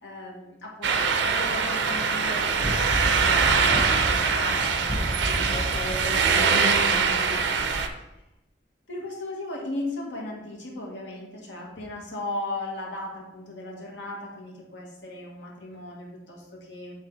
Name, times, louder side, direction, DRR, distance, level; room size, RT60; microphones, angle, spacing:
voice 1, 0.0-7.8 8.9-16.9, left 2 dB, 90° left, -2 dB, 1.8 m, -37 dB
sound 1, 0.8-7.9, right 5 dB, 85° right, 0.6 m, -23 dB
sound 2, 2.6-6.0, equal, 45° right, 2.5 m, -31 dB
7.9 x 3.6 x 4.0 m, 0.94 s
head